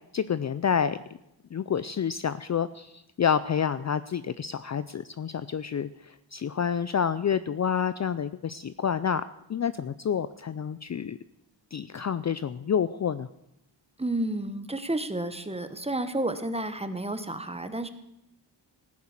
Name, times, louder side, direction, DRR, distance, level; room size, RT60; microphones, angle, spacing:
voice 1, 0.1-1.0 1.5-9.2 9.5-11.2 11.7-13.3, left 7 dB, 40° left, 14 dB, 0.4 m, -28 dB
voice 2, 14.0-17.9, right 1 dB, 15° right, 10 dB, 1.1 m, -31 dB
15.0 x 9.5 x 7.3 m, 0.84 s
wide cardioid pair, 100°, 44 cm